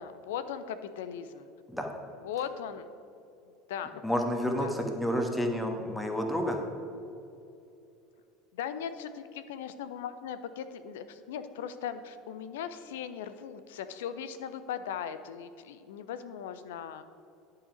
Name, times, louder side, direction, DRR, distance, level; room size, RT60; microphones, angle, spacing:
voice 1, 0.0-1.5 2.2-2.9 3.7-4.0 4.6-4.7 8.5-17.0, left 8 dB, 70° left, 12 dB, 0.5 m, -38 dB
voice 2, 4.0-6.6, equal, ahead, 3 dB, 1.3 m, -30 dB
10.5 x 5.7 x 5.0 m, 2.6 s
figure-of-eight pair, 70°, 0 cm